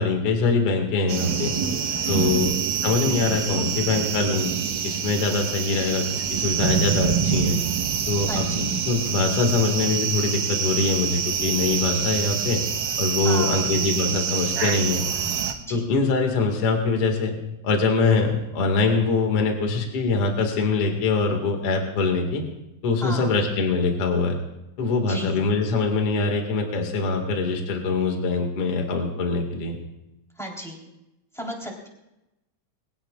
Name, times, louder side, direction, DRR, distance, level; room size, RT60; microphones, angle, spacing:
voice 1, 0.0-1.5 2.1-2.5 2.8-4.5 4.8-7.6 8.1-12.6 13.0-15.0 15.7-17.3 17.6-22.4 22.8-24.4 24.8-29.8, left 3 dB, 45° left, 2 dB, 2.6 m, -23 dB
sound 1, 1.1-15.5, right 7 dB, 70° right, 2.5 m, -26 dB
voice 2, 2.0-2.6 8.3-8.7 13.2-13.6 15.7-15.8 23.0-23.3 25.1-25.4 30.4-30.9 31.3-31.9, right 1 dB, ahead, -1 dB, 3.2 m, -35 dB
22.5 x 17.5 x 2.4 m, 0.92 s
omnidirectional pair, 4.2 m